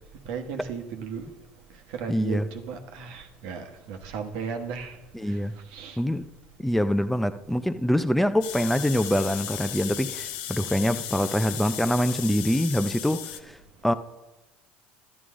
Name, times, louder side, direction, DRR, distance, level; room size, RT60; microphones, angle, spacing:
voice 1, 0.3-1.3 2.0-5.0 5.7-6.0, right 6 dB, 75° right, 1.2 m, -35 dB
voice 2, 2.1-2.5 5.1-5.5 6.0-6.3 6.6-13.6 13.8-13.9, equal, 5° left, 0.6 m, -25 dB
sound 1, 8.4-13.4, left 11 dB, 80° left, 0.7 m, -35 dB
11.0 x 11.0 x 3.7 m
supercardioid pair, 90°, 5 cm